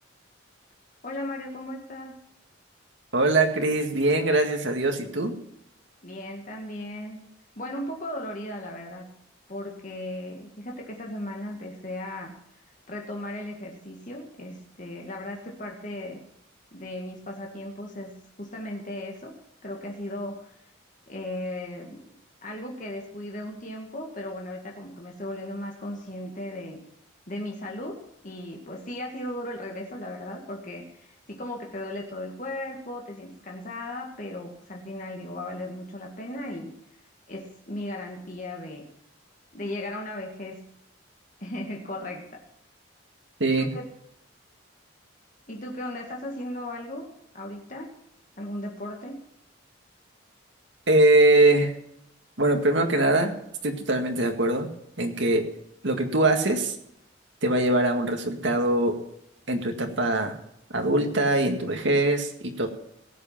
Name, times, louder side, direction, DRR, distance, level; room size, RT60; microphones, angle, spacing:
voice 1, 1.0-2.2 6.0-7.3 7.6-9.1 9.5-16.2 16.7-19.3 19.6-20.6 21.1-22.2 22.4-26.9 27.3-36.7 37.3-38.9 39.5-40.7 41.4-42.4 43.6-43.8 45.5-47.9 48.4-49.2, left 1 dB, 40° left, 0 dB, 1.9 m, -36 dB
voice 2, 3.1-5.3 43.4-43.7 50.9-51.7 52.4-53.3 53.6-54.7 55.0-55.5 55.8-56.8 57.4-59.0 59.5-60.3 60.7-62.7, right 2 dB, 65° right, 4 dB, 1.9 m, -22 dB
17.5 x 7.5 x 5.8 m, 0.76 s
head